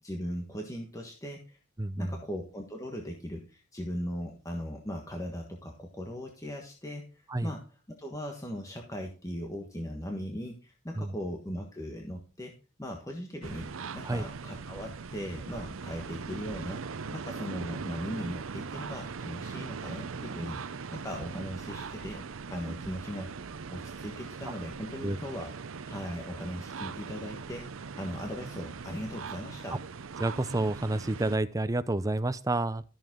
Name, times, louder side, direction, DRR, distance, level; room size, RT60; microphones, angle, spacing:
voice 1, 0.0-1.6 2.0-7.6 8.0-16.8 17.1-22.2 22.5-25.5 25.9-29.8, equal, 15° left, 1 dB, 1.4 m, -39 dB
voice 2, 1.8-2.2 7.3-7.5 11.0-11.1 14.0-14.2 24.5-24.6 25.0-25.2 30.2-32.8, right 2 dB, 15° right, 12 dB, 0.6 m, -29 dB
sound 1, 13.4-31.4, right 5 dB, 75° right, 0.6 m, -40 dB
13.5 x 7.1 x 3.8 m, 0.35 s
head